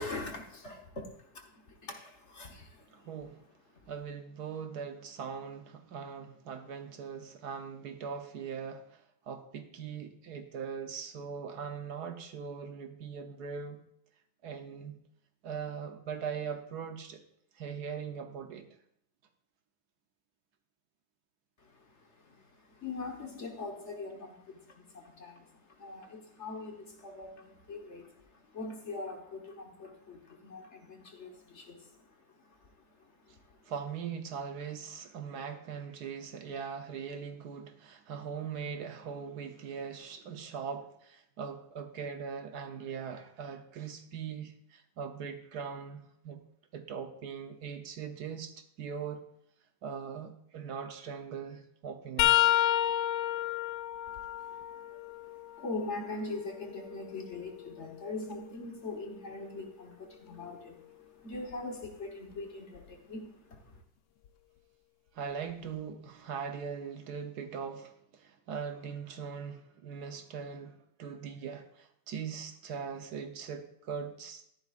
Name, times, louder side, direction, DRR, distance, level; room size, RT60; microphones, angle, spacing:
voice 1, 0.0-3.1 3.7-3.9 21.6-33.7 54.1-63.8, left 3 dB, 45° left, 2 dB, 1.4 m, -43 dB
voice 2, 2.9-3.4 3.9-13.8 14.4-15.0 15.4-17.2 17.6-18.7 33.7-46.4 46.7-49.2 49.8-52.5 65.1-74.4, right 6 dB, 70° right, 7 dB, 1.3 m, -40 dB
sound 1, 52.2-55.9 56.5-58.4 61.3-61.5 62.7-62.9 64.2-64.3, left 13 dB, 80° left, 1.3 m, -31 dB
13.0 x 11.0 x 2.5 m, 0.74 s
omnidirectional pair, 1.9 m